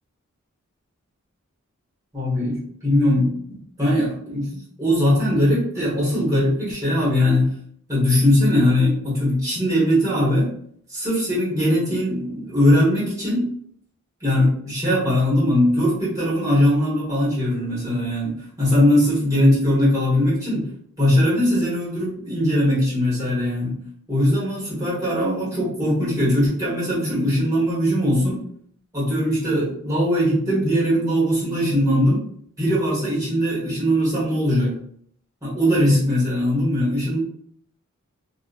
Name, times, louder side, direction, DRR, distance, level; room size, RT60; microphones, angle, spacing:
voice 1, 2.1-2.5 2.8-7.5 7.9-10.5 10.9-13.5 14.2-20.7 21.0-23.8 24.1-28.4 28.9-32.2 32.6-34.7 35.4-37.2, left 1 dB, 15° right, -8 dB, 1.2 m, -20 dB
2.7 x 2.2 x 2.4 m, 0.63 s
head